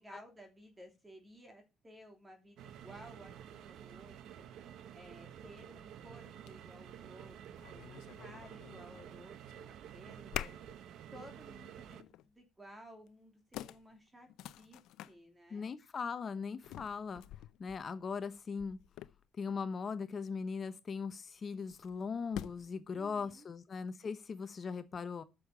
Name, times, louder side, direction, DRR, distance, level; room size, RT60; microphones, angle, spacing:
voice 1, 0.0-4.4 4.9-7.3 7.7-9.4 9.6-10.6 11.1-14.3 14.5-14.8 15.1-15.7 22.9-23.5, equal, 15° right, 3.0 m, -56 dB
sound 1, 2.6-12.0, right 9 dB, 70° right, 0.9 m, -51 dB
sound 2, 5.6-5.7 6.4-6.6 7.0-9.2 9.5-9.9 10.3-10.8 11.2-11.4 11.9-12.3 13.1-13.2 13.5-15.1 16.6-19.5 21.7-22.8, left 14 dB, 85° left, 0.5 m, -47 dB
voice 2, 15.5-17.2 17.6-18.8 19.4-25.2, left 5 dB, 35° left, 0.9 m, -39 dB
8.6 x 6.6 x 7.2 m
cardioid pair, 120°, 0 cm